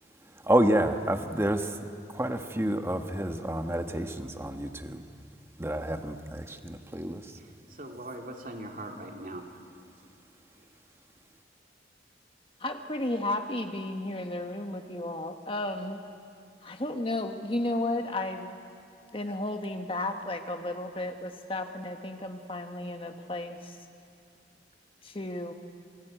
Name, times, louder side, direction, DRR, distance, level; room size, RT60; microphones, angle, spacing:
voice 1, 0.4-5.0 5.6-7.4, right 1 dB, 15° right, 6 dB, 1.2 m, -29 dB
voice 2, 7.4-9.4, right 1 dB, 45° right, 2 dB, 2.8 m, -41 dB
voice 3, 12.6-16.0 16.6-18.5 19.1-23.8 25.0-25.5, left 2 dB, 30° left, 5 dB, 1.3 m, -33 dB
27.5 x 22.5 x 9.1 m, 2.4 s
head